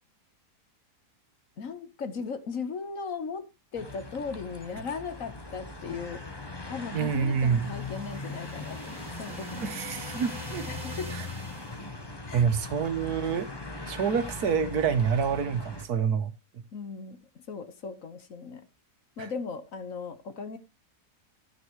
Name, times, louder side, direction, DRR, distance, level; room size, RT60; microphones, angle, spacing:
voice 1, 1.6-3.5 3.7-6.2 6.7-9.7 10.7-11.1 12.3-12.5 16.7-18.6 19.2-20.6, left 5 dB, 55° left, 1.6 m, -37 dB
sound 1, 3.7-15.9, left 2 dB, 15° left, 1.2 m, -40 dB
voice 2, 6.9-7.7 9.6-10.6 11.1-11.2 12.3-13.5 13.9-16.3 19.2-19.3, right 7 dB, 75° right, 1.6 m, -27 dB
sound 2, 7.0-11.9, right 1 dB, 30° right, 2.9 m, -46 dB
13.5 x 9.7 x 3.0 m
omnidirectional pair, 1.7 m